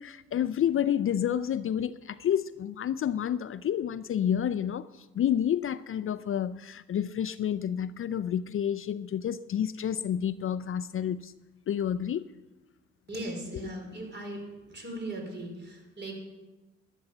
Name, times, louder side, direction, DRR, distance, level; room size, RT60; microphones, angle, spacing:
voice 1, 0.0-11.3 11.7-12.3 13.5-13.7, left 9 dB, 45° left, 0.5 m, -29 dB
voice 2, 13.1-14.4 14.7-16.1, right 1 dB, 35° right, 4.8 m, -38 dB
12.0 x 11.0 x 6.8 m
cardioid pair, 90°, 30 cm